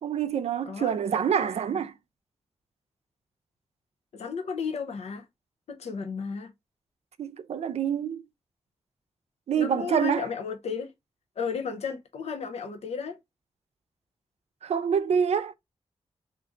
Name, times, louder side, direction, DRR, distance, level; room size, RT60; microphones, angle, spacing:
voice 1, 0.0-1.9 7.2-8.2 9.5-10.3 14.6-15.5, right 7 dB, 85° right, 0.5 m, -26 dB
voice 2, 4.1-5.2 5.7-6.5 9.5-10.9 11.4-13.2, left 6 dB, 90° left, 0.6 m, -33 dB
3.7 x 2.5 x 3.8 m
wide cardioid pair, 130°, 11 cm